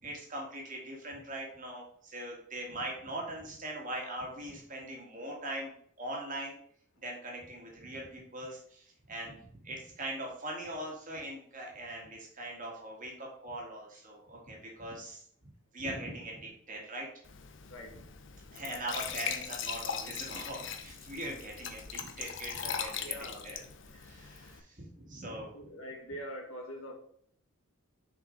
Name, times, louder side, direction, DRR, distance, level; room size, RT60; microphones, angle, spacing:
voice 1, 0.0-5.7 6.0-6.6 7.0-17.1 18.5-23.6 23.9-25.5, right 1 dB, 35° right, -1 dB, 1.9 m, -41 dB
Glass / Trickle dribble / Fill (with liquid), 17.3-24.6, left 8 dB, 55° left, 0.7 m, -40 dB
voice 2, 17.7-18.1 22.7-23.5 25.5-26.9, equal, 75° left, 1 dB, 1.8 m, -44 dB
6.6 x 5.0 x 3.9 m, 0.62 s
head